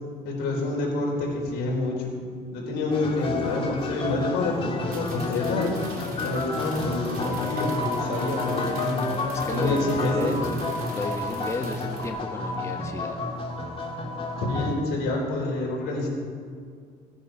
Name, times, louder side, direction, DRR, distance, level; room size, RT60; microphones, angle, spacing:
voice 1, 0.2-2.1 2.5-5.7 6.2-8.9 9.5-10.4 14.4-16.1, left 2 dB, 85° left, -1 dB, 4.3 m, -27 dB
sound 1, 2.9-14.7, left 2 dB, 35° left, 2.1 m, -30 dB
sound 2, 4.8-12.1, right 4 dB, 60° right, 3.1 m, -45 dB
voice 2, 9.3-10.6 10.9-13.2, left 3 dB, 15° left, 3 dB, 1.1 m, -33 dB
18.0 x 10.5 x 5.3 m, 2.1 s
cardioid pair, 110°, 17 cm